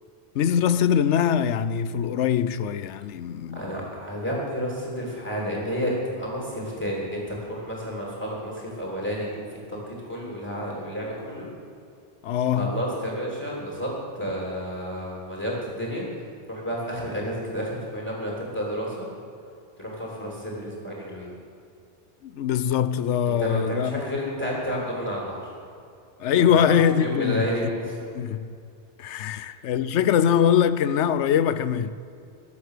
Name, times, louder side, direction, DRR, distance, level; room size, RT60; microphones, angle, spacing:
voice 1, 0.3-3.8 12.2-12.7 22.2-24.0 26.2-27.5 28.1-28.6 29.0-31.9, left 8 dB, 85° left, 0.9 m, -22 dB
voice 2, 3.5-11.5 12.5-16.0 16.5-19.1 19.8-21.3 23.2-25.5 26.4-28.0 29.3-29.4, equal, 15° left, 3.5 m, -31 dB
21.0 x 8.0 x 6.8 m
omnidirectional pair, 1.2 m